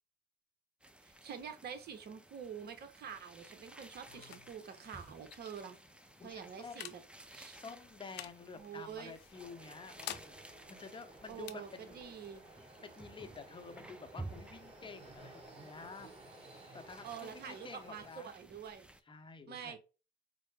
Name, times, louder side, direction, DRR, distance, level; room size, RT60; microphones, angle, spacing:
sound 1, 0.8-19.0, right 2 dB, 5° right, 0.4 m, -55 dB
voice 1, 1.0-5.8 6.2-7.6 8.6-9.1 11.3-12.4 17.0-18.8 19.5-19.8, right 7 dB, 50° right, 0.9 m, -47 dB
sound 2, 3.6-14.8, left 12 dB, 55° left, 0.5 m, -54 dB
voice 2, 4.1-4.5 6.2-7.0 7.5-12.0 12.8-16.2 16.7-18.3 19.1-19.8, left 5 dB, 25° left, 0.7 m, -50 dB
sound 3, 9.3-18.1, right 2 dB, 30° right, 1.8 m, -56 dB
4.4 x 2.0 x 3.3 m
supercardioid pair, 80°, 20 cm